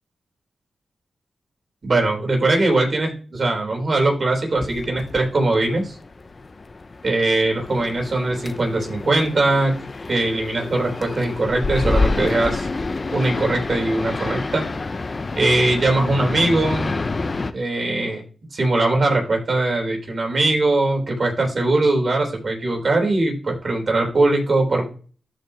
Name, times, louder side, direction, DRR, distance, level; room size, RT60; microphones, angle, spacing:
voice 1, 1.8-5.9 7.0-9.7 10.1-12.7 13.1-14.7 15.4-16.9 17.5-18.2 18.5-24.9, right 2 dB, 55° right, 1 dB, 3.6 m, -21 dB
sound 1, 4.6-17.5, left 3 dB, 45° left, 0.7 m, -28 dB
13.0 x 5.2 x 2.9 m, 0.40 s
cardioid pair, 50°, 0 cm